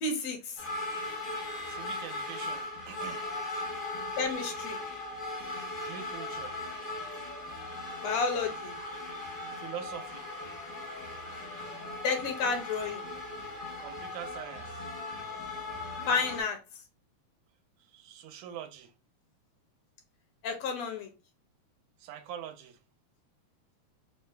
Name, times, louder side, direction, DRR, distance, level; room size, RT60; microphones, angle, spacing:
voice 1, 0.0-0.6 4.2-4.8 8.0-8.8 12.0-13.1 16.1-16.6 20.4-21.1, left 4 dB, 75° left, 1.7 m, -31 dB
sound 1, 0.6-16.4, left 2 dB, 45° left, 0.6 m, -38 dB
voice 2, 1.7-3.3 5.9-6.6 9.6-10.3 13.8-14.8 17.9-18.9 22.0-22.8, right 9 dB, 85° right, 2.0 m, -43 dB
4.9 x 2.2 x 2.4 m
omnidirectional pair, 3.3 m